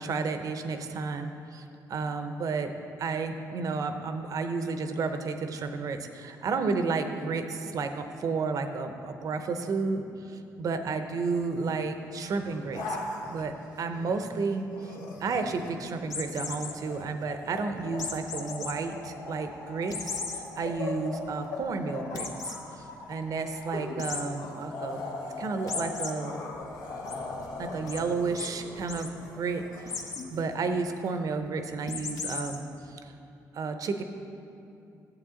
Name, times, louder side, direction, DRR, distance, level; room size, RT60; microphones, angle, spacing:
voice 1, 0.0-2.7 3.0-13.0 13.3-14.9 15.2-25.0 25.4-26.3 27.6-33.1 33.5-34.0, right 4 dB, 55° right, 7 dB, 0.7 m, -32 dB
sound 1, 11.3-11.8 12.3-14.3 14.7-30.3, left 2 dB, 80° left, 1.2 m, -40 dB
sound 2, 16.0-16.7 18.0-18.7 19.2-19.3 19.9-20.4 20.9-21.0 21.3-21.4 22.1-22.6 24.0-24.2 25.7-26.1 26.5-27.1 27.9-28.0 28.4-28.5 28.8-29.1 29.9-30.3 31.9-32.6, left 5 dB, 55° left, 1.1 m, -35 dB
12.0 x 7.8 x 3.8 m, 2.7 s
cardioid pair, 90°, 7 cm